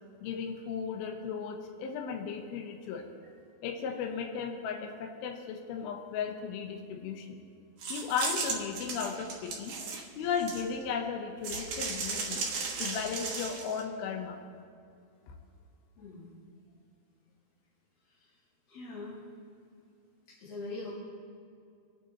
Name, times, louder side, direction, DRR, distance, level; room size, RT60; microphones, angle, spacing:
voice 1, 0.2-3.1 3.6-7.4 7.9-9.8 10.2-12.5 12.8-14.4, left 6 dB, 75° left, 2 dB, 2.7 m, -35 dB
sound 1, 7.8-10.9 11.4-13.8, right 4 dB, 85° right, 1.4 m, -36 dB
voice 2, 16.0-16.4 18.7-19.2 20.4-20.9, left 3 dB, 45° left, -7 dB, 2.7 m, -42 dB
26.0 x 9.2 x 3.0 m, 2.3 s
omnidirectional pair, 4.9 m